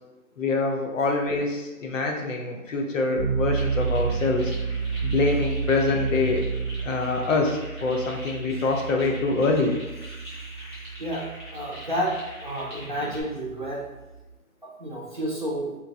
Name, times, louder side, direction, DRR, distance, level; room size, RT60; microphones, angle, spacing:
voice 1, 0.4-4.5 5.0-6.4 6.8-9.7, left 3 dB, 60° left, 2 dB, 0.7 m, -25 dB
sound 1, 3.1-14.3, right 5 dB, 5° right, 1.0 m, -31 dB
sound 2, 3.5-13.2, left 1 dB, 20° left, 0.8 m, -44 dB
voice 2, 11.5-12.1 12.4-13.8 14.6-15.7, equal, 35° right, -4 dB, 0.4 m, -30 dB
3.0 x 2.5 x 3.5 m, 1.1 s
hypercardioid pair, 160°, 44 cm